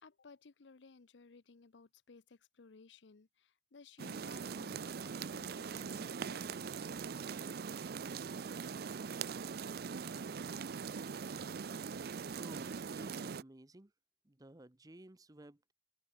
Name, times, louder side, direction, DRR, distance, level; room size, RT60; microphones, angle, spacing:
voice 1, 0.0-6.7, left 4 dB, 85° left, 0.7 m, -59 dB
sound 1, 4.0-13.4, right 6 dB, 55° right, 0.5 m, -42 dB
voice 2, 12.4-13.9 14.2-15.7, right 1 dB, 20° right, 0.9 m, -55 dB
head